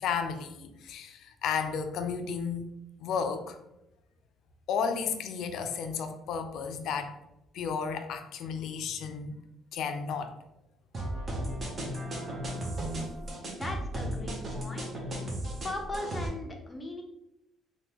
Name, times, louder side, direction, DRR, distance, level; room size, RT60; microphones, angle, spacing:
voice 1, 0.0-2.7 3.0-3.6 4.7-7.1 7.5-9.4 9.7-10.3, left 6 dB, 70° left, 8 dB, 0.4 m, -33 dB
sound 1, 10.9-16.3, right 1 dB, 30° right, 0.7 m, -35 dB
voice 2, 13.5-14.9 15.6-17.0, left 2 dB, 15° left, 2 dB, 0.5 m, -38 dB
3.5 x 2.2 x 2.9 m, 0.85 s
cardioid pair, 140°, 0 cm